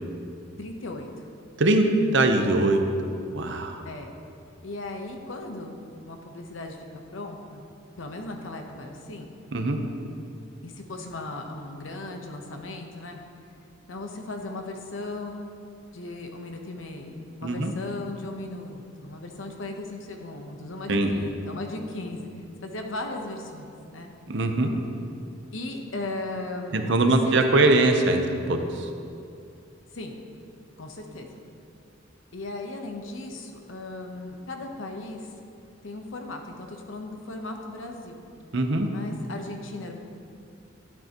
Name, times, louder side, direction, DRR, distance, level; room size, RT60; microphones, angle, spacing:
voice 1, 0.6-1.3 3.8-4.1 4.6-5.8 6.0-7.7 8.0-9.3 10.6-13.2 13.9-15.5 15.9-22.3 22.6-24.1 25.5-27.7 29.9-30.1 30.8-31.3 32.3-35.3 35.8-38.2 38.9-39.9, left 2 dB, 75° left, 3 dB, 1.0 m, -37 dB
voice 2, 2.1-2.8 3.3-3.8 9.5-9.8 17.4-17.7 20.9-21.1 24.3-24.7 26.7-28.9 38.5-38.9, right 2 dB, 65° right, 5 dB, 0.8 m, -22 dB
12.0 x 9.0 x 3.0 m, 2.5 s
head